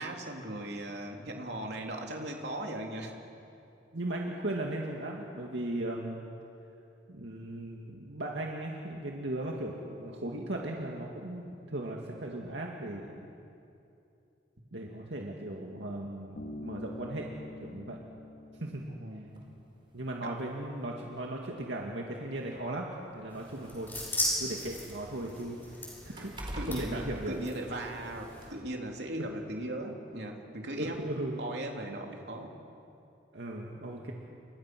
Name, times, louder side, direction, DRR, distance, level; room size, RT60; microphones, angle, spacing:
voice 1, 0.0-3.1 19.0-19.4 20.2-20.3 26.0-26.1 26.6-31.0 31.4-32.5, right 1 dB, 70° right, 1 dB, 3.1 m, -38 dB
voice 2, 3.9-6.2 7.1-13.3 14.7-17.3 17.6-18.0 18.6-18.8 19.9-22.9 23.1-23.9 24.4-26.3 26.6-27.4 30.8-31.4 33.3-34.1, right 1 dB, 85° right, -1 dB, 2.2 m, -37 dB
Bass guitar, 16.4-19.9, left 2 dB, 80° left, 2.1 m, -46 dB
sound 1, 19.3-19.5 20.6-20.7 21.1-21.2 22.2-24.2 24.5-28.0 28.4-28.5, equal, 25° right, 4.3 m, -44 dB
sound 2, 23.3-28.5, left 1 dB, 10° left, 6.9 m, -38 dB
30.0 x 26.5 x 6.1 m, 2.7 s
head